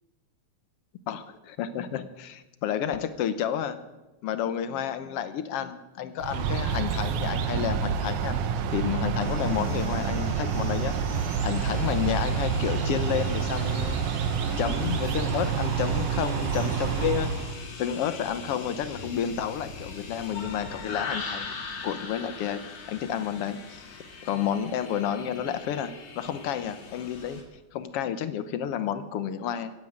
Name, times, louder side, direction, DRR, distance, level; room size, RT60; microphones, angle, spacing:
voice 1, 1.1-3.8 4.2-8.4 8.7-14.0 14.6-17.3 17.8-21.5 21.8-22.6 22.9-23.9 24.2-27.4 27.7-29.7, left 9 dB, 65° left, 12 dB, 1.6 m, -30 dB
sound 1, 6.2-17.6, right 6 dB, 85° right, 2.5 m, -28 dB
sound 2, 9.2-27.4, left 4 dB, 90° left, 3.8 m, -41 dB
16.0 x 9.4 x 8.7 m, 1.1 s
omnidirectional pair, 3.3 m